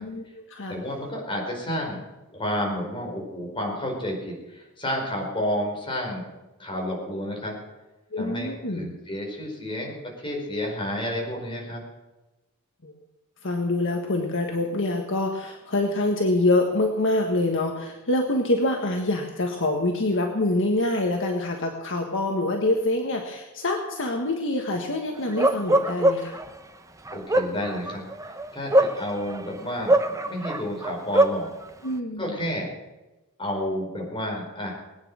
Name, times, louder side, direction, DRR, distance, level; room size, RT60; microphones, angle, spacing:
voice 1, 0.0-0.8 8.1-8.9 12.8-12.9 13.4-26.4 31.8-32.4, left 2 dB, 60° left, 2 dB, 1.6 m, -25 dB
voice 2, 0.7-2.0 2.3-6.3 6.6-7.6 8.2-10.0 10.2-11.8 27.1-31.5 32.2-32.7 33.4-34.7, equal, 25° left, 0 dB, 5.0 m, -30 dB
Bark, 25.4-26.4 27.1-29.4 29.9-31.4, right 1 dB, 15° right, 0.9 m, -21 dB
20.5 x 9.6 x 6.4 m, 1.1 s
head